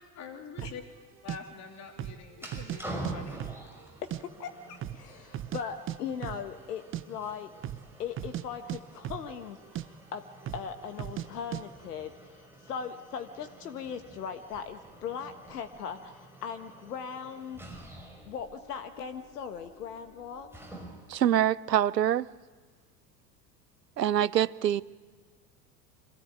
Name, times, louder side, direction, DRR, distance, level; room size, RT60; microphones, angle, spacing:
voice 1, 0.2-0.8 1.2-3.4, left 6 dB, 30° left, 3.5 m, -45 dB
sound 1, 0.6-0.8 1.3-1.4 1.9-2.2 2.5-3.1 3.4-4.2 4.5-4.6 4.8-5.6 5.9-6.0 6.2-6.4 6.7-7.0 7.5-7.9 8.1-9.5 9.7-9.9 10.4-10.7 11.0-11.3 11.5-11.6, right 12 dB, 25° right, 0.8 m, -36 dB
sound 2, 2.3-21.2, right 1 dB, 5° right, 6.0 m, -47 dB
voice 2, 4.0-7.5 8.0-10.2 10.5-17.6 18.2-20.5, left 7 dB, 65° left, 1.6 m, -39 dB
voice 3, 21.1-22.3 24.0-24.8, right 11 dB, 75° right, 0.8 m, -25 dB
26.0 x 17.0 x 9.4 m
figure-of-eight pair, 80°, 50 cm